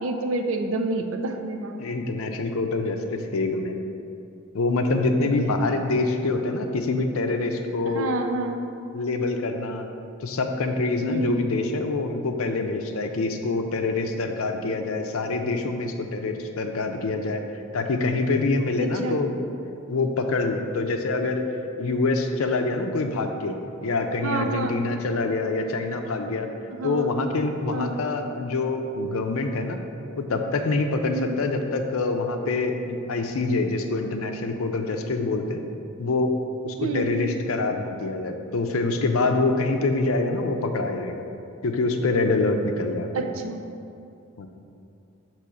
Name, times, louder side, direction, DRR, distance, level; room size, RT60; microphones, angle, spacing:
voice 1, 0.0-1.8 5.2-5.3 5.6-5.7 7.9-8.6 11.0-11.4 18.8-19.2 24.2-24.8 26.7-27.1 27.7-28.0 31.1-31.4 36.8-37.3 43.1-43.6, right 2 dB, 65° right, 4 dB, 0.5 m, -28 dB
voice 2, 1.8-3.8 4.5-8.1 8.9-9.9 10.2-17.4 17.7-19.3 19.9-21.4 21.8-23.6 23.8-26.5 26.8-29.8 30.2-35.6 36.0-36.3 36.6-41.2 41.6-43.1 44.4-44.5, left 3 dB, 80° left, 5 dB, 0.5 m, -25 dB
6.2 x 3.0 x 5.7 m, 2.6 s
head